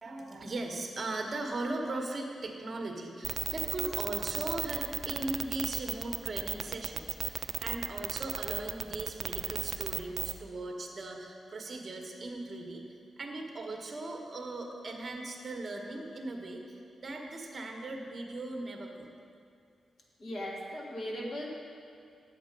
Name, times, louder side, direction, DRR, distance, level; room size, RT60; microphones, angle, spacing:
voice 1, 0.0-12.8 13.2-19.1, right 2 dB, 35° right, 2 dB, 1.1 m, -38 dB
sound 1, 3.2-10.4, right 7 dB, 55° right, 0.3 m, -34 dB
voice 2, 20.2-21.5, equal, 40° left, -3 dB, 1.6 m, -38 dB
9.4 x 7.4 x 5.2 m, 2.4 s
wide cardioid pair, 150°, 0 cm